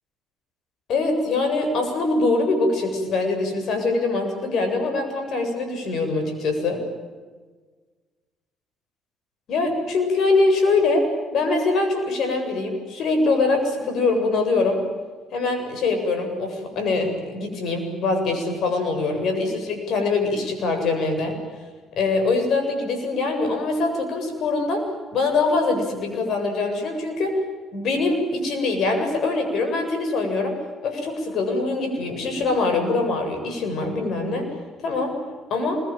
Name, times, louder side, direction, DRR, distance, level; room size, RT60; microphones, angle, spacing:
voice 1, 0.9-6.8 9.5-11.1 11.3-14.8 15.3-21.4 22.0-27.4 27.7-30.6 30.8-34.5 34.8-35.2 35.5-35.8, left 3 dB, 60° left, 6 dB, 7.9 m, -23 dB
26.5 x 22.0 x 9.2 m, 1.4 s
hypercardioid pair, 55°, 0 cm